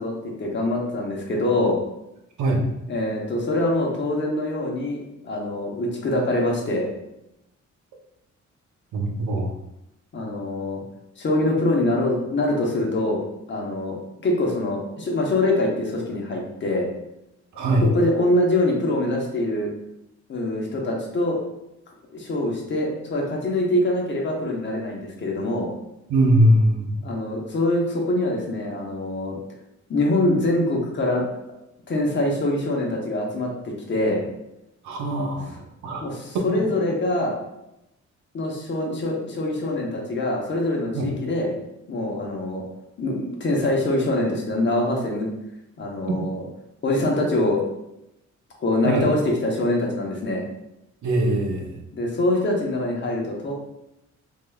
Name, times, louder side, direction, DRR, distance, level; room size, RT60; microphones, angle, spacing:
voice 1, 0.0-1.8 2.9-6.9 10.1-10.8 11.2-13.2 13.5-14.0 14.2-16.9 17.9-19.7 20.3-21.4 22.1-25.7 27.0-29.3 29.9-31.2 31.9-34.2 36.0-37.4 38.3-41.5 41.9-42.6 43.0-45.3 45.8-46.4 46.8-47.6 48.6-50.4 51.9-53.5, left 1 dB, 40° left, -1 dB, 0.8 m, -24 dB
voice 2, 8.9-9.5 17.6-17.9 26.1-27.0 34.8-35.6 35.8-36.0 36.5-36.8 40.9-41.1 48.8-49.1 51.0-51.8, right 1 dB, 85° right, 0 dB, 0.8 m, -21 dB
3.5 x 3.4 x 2.3 m, 0.86 s
wide cardioid pair, 160°, 29 cm